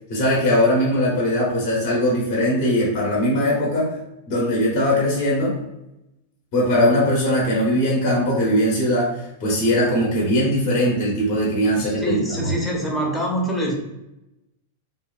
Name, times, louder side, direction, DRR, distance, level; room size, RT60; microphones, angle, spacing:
voice 1, 0.1-4.0 4.3-5.6 6.5-12.5, equal, 50° left, -4 dB, 0.8 m, -20 dB
voice 2, 11.7-13.7, right 1 dB, 10° left, -1 dB, 0.6 m, -25 dB
2.6 x 2.2 x 2.3 m, 0.91 s
hypercardioid pair, 125°, 0 cm